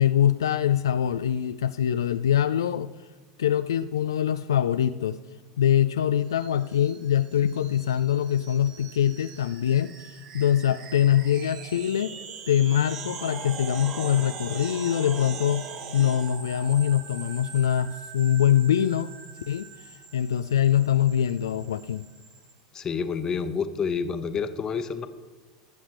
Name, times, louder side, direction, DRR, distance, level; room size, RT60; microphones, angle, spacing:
voice 1, 0.0-2.9 3.4-5.2 5.6-12.2 12.5-19.1 19.5-19.7 20.1-22.1, left 10 dB, 75° left, 11 dB, 0.3 m, -23 dB
sound 1, 6.3-22.5, right 6 dB, 45° right, 1.3 m, -42 dB
voice 2, 22.7-25.1, left 6 dB, 30° left, 10 dB, 0.9 m, -28 dB
20.5 x 7.3 x 3.1 m, 1.3 s
figure-of-eight pair, 80°, 2 cm